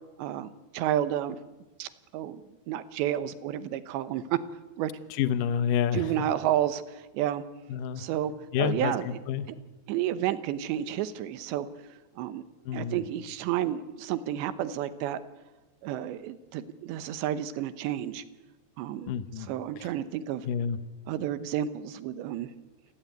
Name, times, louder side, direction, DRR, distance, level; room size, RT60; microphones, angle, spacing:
voice 1, 0.2-0.5 0.7-1.4 1.8-4.4 4.8-4.9 5.9-7.4 8.0-8.3 8.6-9.1 9.9-11.7 12.2-12.4 12.7-15.2 15.8-18.2 18.8-19.1 19.5-20.5 21.1-22.5, right 11 dB, 85° right, 13 dB, 3.3 m, -31 dB
voice 2, 5.1-6.1 7.7-8.0 8.5-9.5 12.7-13.0 19.1-19.5 19.8-19.9 20.5-20.8, left 8 dB, 70° left, 11 dB, 2.2 m, -29 dB
28.0 x 18.5 x 9.2 m, 1.2 s
omnidirectional pair, 5.0 m